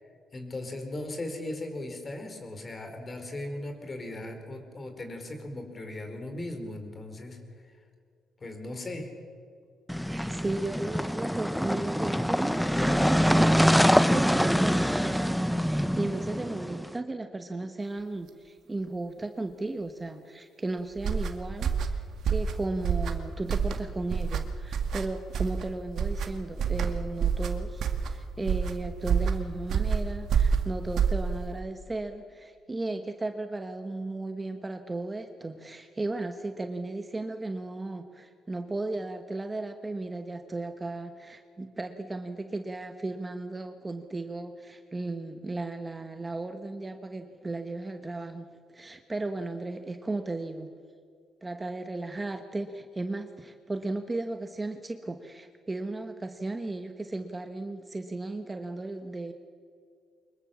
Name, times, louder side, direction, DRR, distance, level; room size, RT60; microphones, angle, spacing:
voice 1, 0.3-7.4 7.6-7.7 8.4-9.1, left 1 dB, 30° left, 5 dB, 4.6 m, -38 dB
sound 1, 9.9-16.9, equal, ahead, 0.8 m, -25 dB
voice 2, 10.1-48.5 48.7-50.7 51.4-59.3, right 2 dB, 20° right, 7 dB, 1.2 m, -35 dB
sound 2, 21.0-31.6, right 6 dB, 65° right, 1.9 m, -28 dB
24.5 x 21.5 x 7.3 m, 2.2 s
cardioid pair, 105°, 0 cm